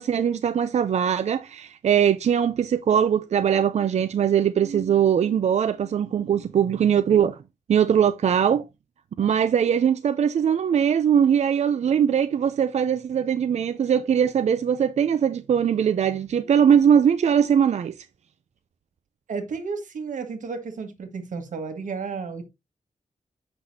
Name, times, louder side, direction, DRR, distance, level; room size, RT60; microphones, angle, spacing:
voice 1, 0.0-7.4 7.7-8.6 9.2-17.9, right 8 dB, 60° right, 0.4 m, -21 dB
voice 2, 19.3-22.5, right 5 dB, 90° right, 1.5 m, -32 dB
7.8 x 6.0 x 2.7 m
wide cardioid pair, 160°, 13 cm